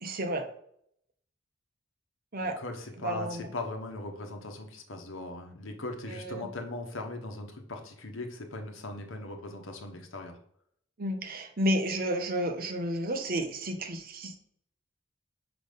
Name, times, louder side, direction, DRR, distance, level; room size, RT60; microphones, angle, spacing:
voice 1, 0.0-0.4 2.3-2.6 3.0-3.5 6.1-6.4 11.0-14.4, equal, 45° right, 5 dB, 0.9 m, -31 dB
voice 2, 2.6-10.4, left 2 dB, 80° left, 4 dB, 1.1 m, -39 dB
6.0 x 4.0 x 5.2 m, 0.69 s
head